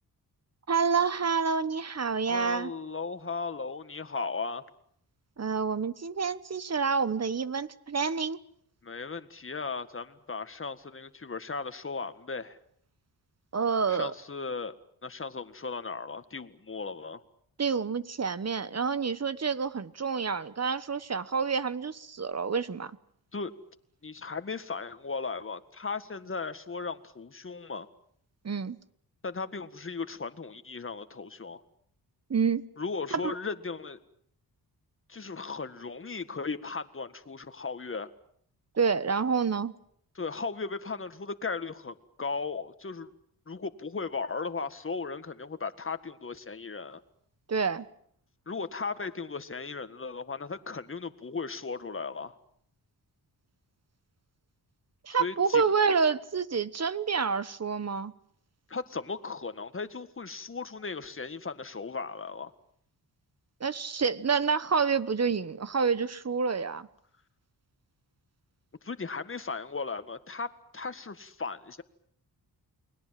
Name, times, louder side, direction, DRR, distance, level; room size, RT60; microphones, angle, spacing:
voice 1, 0.7-2.7 5.4-8.4 13.5-14.1 17.6-22.9 28.4-28.8 32.3-32.7 33.1-33.3 38.8-39.7 47.5-47.8 55.0-58.1 63.6-66.9, right 5 dB, 40° right, 1.2 m, -28 dB
voice 2, 2.3-4.6 8.8-12.6 13.9-14.7 15.0-17.2 23.3-23.5 24.0-27.9 29.2-31.6 32.8-34.0 35.1-38.1 40.2-43.1 43.5-47.0 48.5-52.4 55.1-55.7 58.7-62.5 68.8-71.8, left 4 dB, 30° left, 1.8 m, -36 dB
29.5 x 21.0 x 7.6 m
cardioid pair, 85°, 39 cm